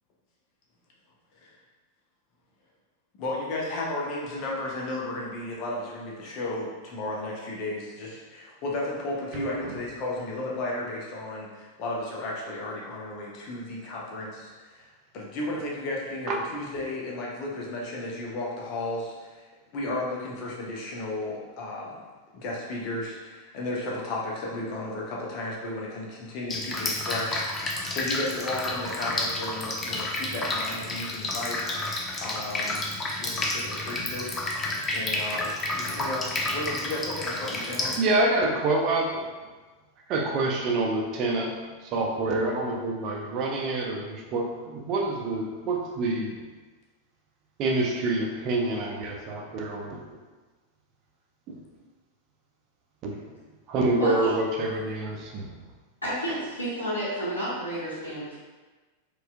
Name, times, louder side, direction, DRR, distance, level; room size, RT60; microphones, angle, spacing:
voice 1, 3.2-19.4 19.7-22.0 22.3-32.8 33.2-34.3 34.9-38.0, left 2 dB, 40° left, -3 dB, 0.8 m, -34 dB
Drip, 26.5-38.0, left 2 dB, 20° left, 0.4 m, -30 dB
voice 2, 38.0-39.3 40.1-46.4 47.6-50.2 51.5-51.6 53.0-53.2 53.7-55.5, right 2 dB, 40° right, 0 dB, 0.5 m, -27 dB
voice 3, 54.0-54.3 56.0-58.3, equal, 75° left, -11 dB, 0.9 m, -30 dB
4.2 x 2.4 x 2.4 m, 1.3 s
figure-of-eight pair, 90°, 0 cm